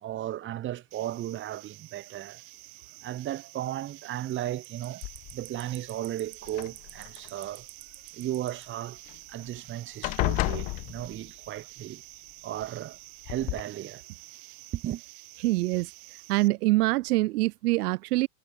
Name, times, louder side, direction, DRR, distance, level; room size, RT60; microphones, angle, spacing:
voice 1, 0.0-2.4 3.0-5.0 5.3-7.7 8.1-9.0 9.3-12.0 12.4-14.0 14.7-15.0, right 13 dB, 25° right, 1.5 m, -35 dB
sound 1, 0.9-16.5, right 38 dB, 40° right, 1.2 m, -49 dB
sound 2, 5.0-5.6 6.4-7.3 9.1-9.2 9.5-9.7 10.0-11.5 12.6-12.7 13.3-13.6, left 23 dB, 20° left, 0.4 m, -31 dB
voice 2, 15.4-15.9 16.3-18.3, right 20 dB, 65° right, 0.6 m, -24 dB
supercardioid pair, 145°, 49 cm